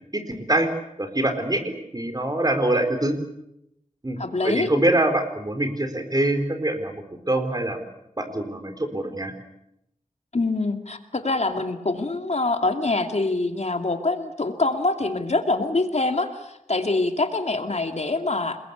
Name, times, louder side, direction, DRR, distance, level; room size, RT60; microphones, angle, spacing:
voice 1, 0.1-0.7 1.0-3.2 4.0-4.2 4.4-7.8 8.2-9.3, right 1 dB, 30° right, 7 dB, 4.3 m, -24 dB
voice 2, 4.2-4.7 10.3-18.6, left 2 dB, 55° left, 6 dB, 2.5 m, -25 dB
28.5 x 21.5 x 8.2 m, 0.81 s
wide cardioid pair, 75°, 14 cm